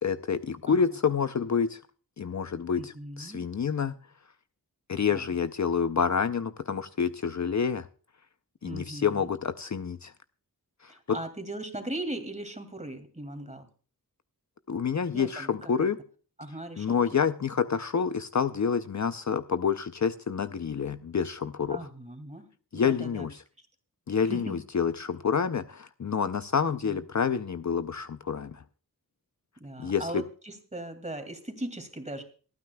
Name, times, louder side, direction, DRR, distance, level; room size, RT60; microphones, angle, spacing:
voice 1, 0.0-1.8 2.2-2.9 3.2-4.0 4.9-7.9 8.6-10.1 10.8-11.2 14.7-16.0 16.8-21.8 22.7-23.4 24.1-28.6 29.8-30.2, left 6 dB, 50° left, 11 dB, 0.6 m, -28 dB
voice 2, 2.8-3.4 5.1-5.4 8.6-9.3 10.9-13.7 15.1-15.9 16.4-17.0 21.7-22.5 22.7-23.3 24.3-24.6 26.8-27.0 29.6-32.2, right 1 dB, 20° right, 8 dB, 2.3 m, -39 dB
27.0 x 9.4 x 2.2 m, 0.39 s
wide cardioid pair, 85°, 37 cm